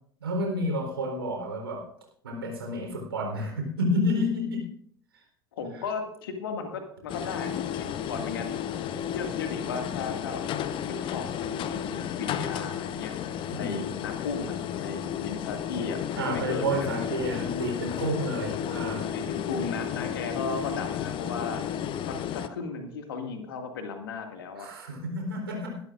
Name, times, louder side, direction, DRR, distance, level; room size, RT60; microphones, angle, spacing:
voice 1, 0.2-1.9 2.2-4.7 5.1-5.2 5.7-5.8 13.5-13.8 16.2-19.1 24.6-25.8, equal, 75° right, 1 dB, 4.0 m, -30 dB
voice 2, 5.5-8.5 9.1-10.4 10.9-13.1 13.6-16.9 19.1-21.6 22.3-24.7, left 4 dB, 70° left, 5 dB, 2.1 m, -35 dB
sound 1, 7.1-22.5, left 9 dB, 40° left, 0.8 m, -33 dB
21.5 x 12.5 x 2.6 m, 0.63 s
figure-of-eight pair, 65°, 12 cm